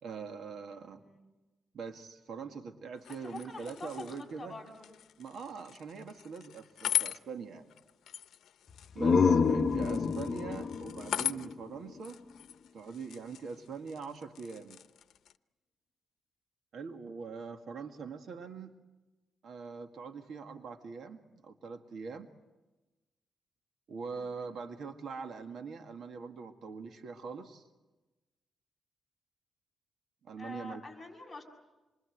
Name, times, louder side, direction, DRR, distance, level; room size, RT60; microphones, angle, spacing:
voice 1, 0.0-1.0 1.7-4.6 5.2-7.7 8.9-12.2 12.7-14.8 16.7-18.7 19.4-22.3 23.9-27.6 30.2-30.8, right 5 dB, 65° right, 6 dB, 1.9 m, -43 dB
voice 2, 0.6-1.3 3.1-4.9 9.7-10.0 24.0-24.5 30.4-31.4, left 3 dB, 15° left, 0 dB, 6.7 m, -47 dB
sound 1, 3.0-15.4, left 11 dB, 85° left, 0.8 m, -41 dB
sound 2, 8.7-12.4, left 5 dB, 45° left, 1.1 m, -29 dB
27.0 x 24.5 x 8.0 m, 1.1 s
cardioid pair, 130°, 0 cm